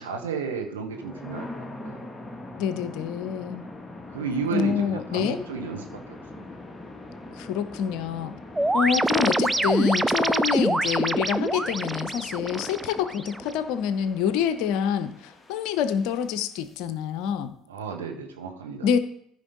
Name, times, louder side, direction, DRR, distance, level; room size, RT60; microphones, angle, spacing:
voice 1, 0.0-2.1 4.1-5.9 6.3-6.4 10.6-10.8 17.7-18.9, right 5 dB, 75° right, 2 dB, 1.4 m, -32 dB
sound 1, 0.8-16.7, left 2 dB, 15° left, 1.3 m, -43 dB
voice 2, 2.6-3.7 4.5-5.4 7.4-8.3 8.7-17.5 18.8-19.0, left 8 dB, 60° left, 12 dB, 0.7 m, -26 dB
sound 2, 8.6-13.5, right 2 dB, 10° right, 0.4 m, -25 dB
14.0 x 5.3 x 4.0 m, 0.71 s
figure-of-eight pair, 60°, 0 cm